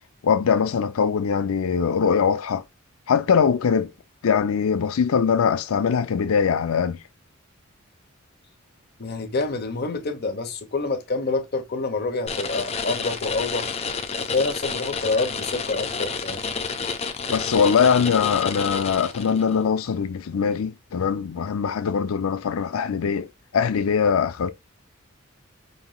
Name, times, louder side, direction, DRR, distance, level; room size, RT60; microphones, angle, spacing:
voice 1, 0.2-2.6 3.1-3.9 4.2-7.0 17.3-24.5, left 6 dB, 85° left, 0.5 m, -22 dB
voice 2, 9.0-13.7 14.2-16.4, left 3 dB, 50° left, 0.9 m, -27 dB
sound 1, 12.3-19.5, left 5 dB, 30° left, 0.6 m, -30 dB
5.3 x 3.1 x 2.3 m
head